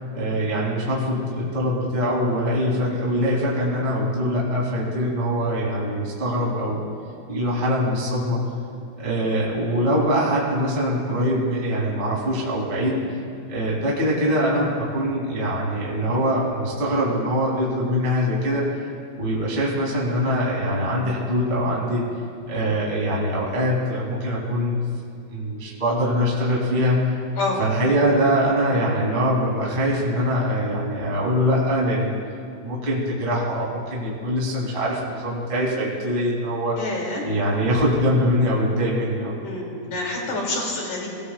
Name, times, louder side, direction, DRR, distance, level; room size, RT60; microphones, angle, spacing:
voice 1, 0.1-6.8 7.3-8.4 9.0-12.9 13.5-18.6 19.2-22.0 22.5-24.8 25.3-27.1 27.6-32.1 32.6-36.8 37.2-39.4, equal, 15° right, -4 dB, 1.8 m, -23 dB
voice 2, 36.8-37.3 39.4-41.1, left 2 dB, 45° left, -2 dB, 3.3 m, -27 dB
23.5 x 17.5 x 2.4 m, 2.4 s
omnidirectional pair, 5.5 m